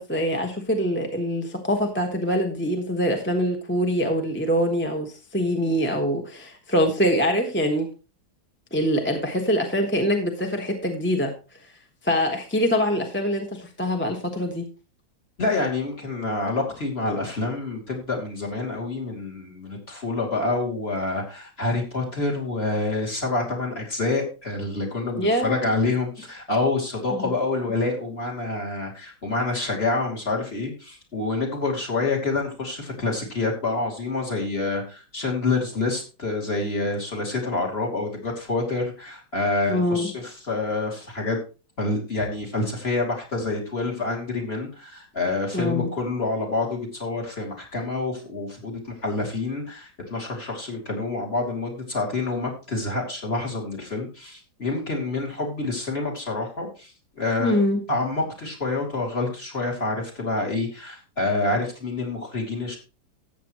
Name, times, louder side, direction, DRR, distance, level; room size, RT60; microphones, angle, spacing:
voice 1, 0.0-7.9 8.7-11.3 12.0-14.7 25.2-25.7 27.1-27.3 39.7-40.1 45.5-45.9 57.4-57.8, equal, 10° left, 3 dB, 1.0 m, -24 dB
voice 2, 15.4-41.4 41.8-56.9 57.2-57.6 57.9-62.8, left 3 dB, 30° left, 0 dB, 2.9 m, -27 dB
13.5 x 8.3 x 3.1 m, 0.32 s
omnidirectional pair, 2.1 m